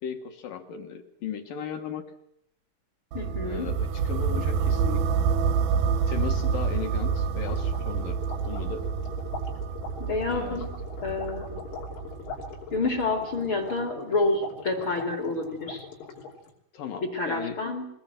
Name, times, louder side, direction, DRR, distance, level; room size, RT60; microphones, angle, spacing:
voice 1, 0.0-2.1 3.4-5.3 6.1-8.8 10.3-10.7 16.7-17.6, left 7 dB, 70° left, 6 dB, 2.1 m, -37 dB
voice 2, 3.1-3.7 10.0-10.7 11.0-11.6 12.7-15.9 17.0-17.8, left 3 dB, 55° left, 5 dB, 1.4 m, -28 dB
sound 1, 3.1-13.0, right 6 dB, 75° right, 2.3 m, -28 dB
sound 2, 7.1-16.5, left 5 dB, 90° left, 5.7 m, -42 dB
22.0 x 20.5 x 7.7 m, 0.74 s
omnidirectional pair, 5.8 m